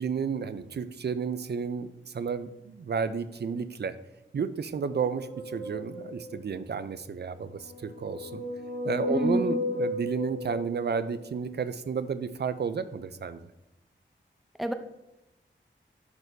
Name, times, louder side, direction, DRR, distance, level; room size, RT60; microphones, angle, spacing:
voice 1, 0.0-4.0 4.3-8.4 8.8-13.5, right 6 dB, 55° right, 13 dB, 0.4 m, -32 dB
sound 1, 4.9-6.5 7.3-11.2, left 3 dB, 80° left, 2.0 m, -35 dB
voice 2, 9.1-9.6 14.6-14.7, equal, ahead, 7 dB, 0.5 m, -27 dB
10.5 x 4.1 x 2.7 m, 0.93 s
wide cardioid pair, 65°, 20 cm